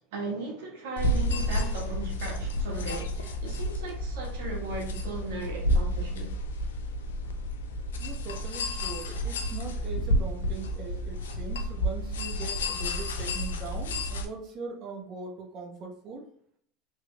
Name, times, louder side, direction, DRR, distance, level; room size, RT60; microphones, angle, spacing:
voice 1, 0.1-6.3, right 3 dB, 70° right, 1.4 m, -37 dB
sound 1, 1.0-14.3, equal, 90° left, 0.5 m, -30 dB
voice 2, 8.0-16.2, right 4 dB, 50° right, 1.0 m, -41 dB
3.3 x 3.2 x 2.3 m
hypercardioid pair, 95°, 0 cm